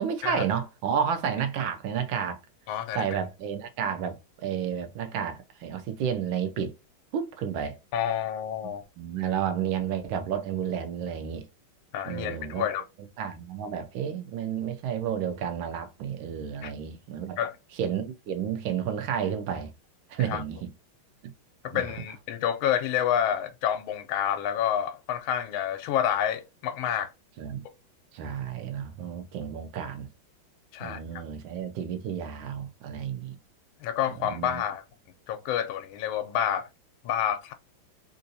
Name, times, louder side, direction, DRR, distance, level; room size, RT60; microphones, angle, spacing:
voice 1, 0.0-2.4 2.9-6.7 7.1-7.8 9.0-11.5 12.0-12.7 13.2-17.4 17.7-19.7 20.1-20.7 21.2-21.3 21.7-21.9 27.4-27.6 28.1-30.1 30.8-33.4 34.2-34.6, right 8 dB, 80° right, 1.4 m, -31 dB
voice 2, 2.7-3.0 7.9-8.8 11.9-12.8 16.6-16.7 17.4-17.5 20.3-20.4 21.6-27.1 30.7-31.0 33.8-34.8 35.3-36.7 37.0-37.5, left 9 dB, 80° left, 1.4 m, -28 dB
3.6 x 2.6 x 2.6 m
omnidirectional pair, 2.2 m